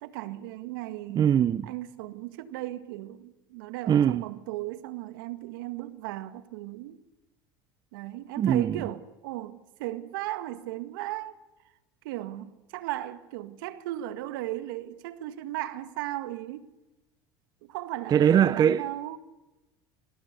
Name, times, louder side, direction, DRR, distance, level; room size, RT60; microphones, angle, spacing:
voice 1, 0.0-1.3 1.6-7.0 7.9-11.4 12.0-16.7 17.6-19.2, right 15 dB, 75° right, 1.7 m, -36 dB
voice 2, 1.1-1.7 3.9-4.2 8.4-8.8 18.1-18.8, right 9 dB, 35° right, 0.8 m, -21 dB
27.0 x 27.0 x 6.7 m
supercardioid pair, 95°, 11 cm